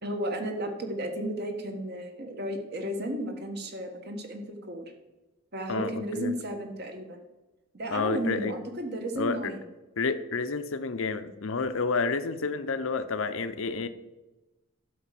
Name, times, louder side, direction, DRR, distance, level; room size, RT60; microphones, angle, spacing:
voice 1, 0.0-4.9 5.5-7.2 7.7-9.6, right 1 dB, 50° right, 4 dB, 1.5 m, -33 dB
voice 2, 5.7-6.3 7.9-8.6 9.2-9.5 10.0-13.9, left 4 dB, 70° left, 11 dB, 0.7 m, -30 dB
12.0 x 5.0 x 7.5 m, 1.1 s
head